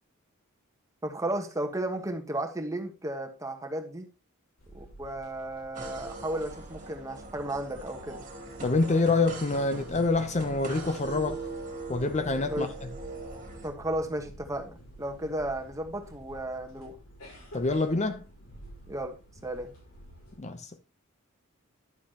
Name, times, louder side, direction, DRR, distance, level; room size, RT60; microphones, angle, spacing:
voice 1, 1.0-4.1 4.7-8.3 12.5-12.7 13.6-17.0 18.9-19.2 19.4-19.7, right 1 dB, 15° right, 1.4 m, -34 dB
sound 1, 4.6-20.4, right 1 dB, 80° left, 5.0 m, -49 dB
sound 2, 5.7-13.7, right 2 dB, 40° right, 2.3 m, -41 dB
voice 2, 8.6-11.4 11.9-12.7 17.5-18.2 20.4-20.7, left 3 dB, 35° left, 0.7 m, -26 dB
10.5 x 7.1 x 2.9 m
head